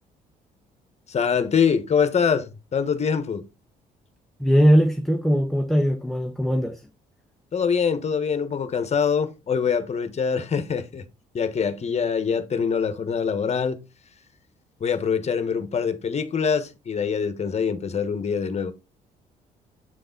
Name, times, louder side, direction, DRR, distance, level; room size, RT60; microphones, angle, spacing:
voice 1, 1.1-3.4 7.5-11.0 11.3-13.8 14.8-18.7, left 6 dB, 40° left, 1.2 m, -24 dB
voice 2, 4.4-6.9, equal, ahead, 0.9 m, -20 dB
8.0 x 3.9 x 3.9 m
supercardioid pair, 75°, 16 cm